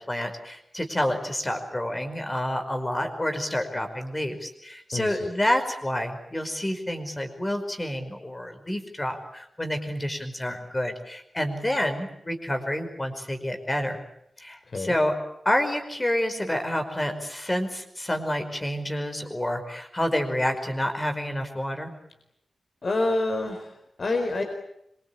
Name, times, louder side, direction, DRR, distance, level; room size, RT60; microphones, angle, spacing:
voice 1, 0.1-14.0 14.4-15.1 15.5-21.9, left 1 dB, 15° left, 6 dB, 5.2 m, -28 dB
voice 2, 4.9-5.3 14.7-15.0 22.8-24.4, left 2 dB, 50° left, 4 dB, 4.6 m, -27 dB
26.0 x 24.5 x 8.8 m, 0.76 s
wide cardioid pair, 125°, 0 cm